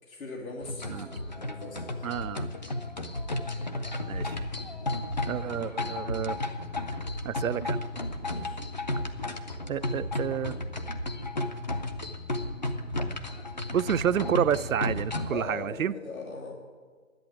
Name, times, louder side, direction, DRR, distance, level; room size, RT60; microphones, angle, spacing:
voice 1, 0.0-2.1 8.2-8.6 15.3-16.5, left 3 dB, 85° left, -2 dB, 2.7 m, -40 dB
sound 1, 0.6-15.4, left 1 dB, 35° left, 0.6 m, -33 dB
voice 2, 2.0-2.5 4.1-4.4 5.3-6.4 7.2-7.8 9.7-10.6 13.7-15.9, right 9 dB, 75° right, 14 dB, 0.6 m, -29 dB
10.5 x 8.4 x 9.0 m, 1.5 s
hypercardioid pair, 170°, 41 cm